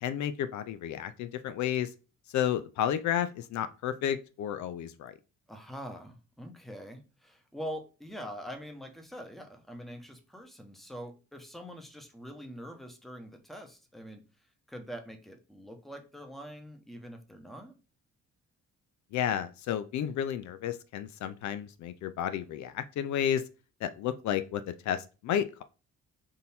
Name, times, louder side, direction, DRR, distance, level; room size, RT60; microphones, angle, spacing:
voice 1, 0.0-1.9 2.3-5.1 19.1-23.4 23.8-25.6, left 10 dB, 70° left, 12 dB, 0.4 m, -32 dB
voice 2, 5.5-14.2 14.7-17.7, equal, ahead, 4 dB, 0.9 m, -44 dB
3.8 x 2.6 x 4.2 m, 0.32 s
cardioid pair, 90°, 30 cm